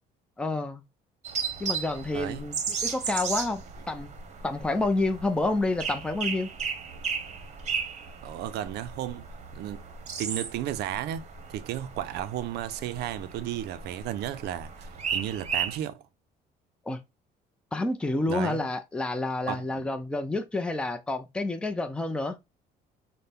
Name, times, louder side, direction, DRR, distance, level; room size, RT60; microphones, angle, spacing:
voice 1, 0.4-0.8 1.6-3.6 3.9-4.1 4.4-6.5 16.9-17.0 17.7-22.4, left 2 dB, 5° left, 0.5 m, -29 dB
sound 1, 1.2-15.8, right 6 dB, 45° right, 0.9 m, -35 dB
voice 2, 2.1-2.4 8.2-9.3 9.5-9.8 10.2-16.0 18.3-18.6 19.5-19.9, right 12 dB, 80° right, 0.5 m, -34 dB
5.6 x 2.1 x 3.5 m
cardioid pair, 110°, 17 cm